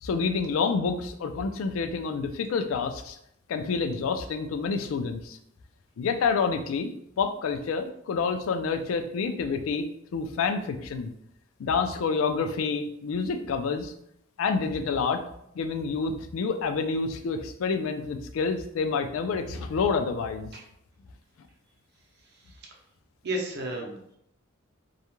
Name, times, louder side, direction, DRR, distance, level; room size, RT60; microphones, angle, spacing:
voice 1, 0.0-3.2 3.5-5.4 6.0-6.9 7.2-9.9 10.1-11.1 11.6-13.9 14.4-15.2 15.6-20.5, left 5 dB, 70° left, 7 dB, 0.3 m, -28 dB
voice 2, 22.2-22.7 23.2-24.2, right 1 dB, 55° right, 0 dB, 0.6 m, -34 dB
2.3 x 2.1 x 2.9 m, 0.74 s
head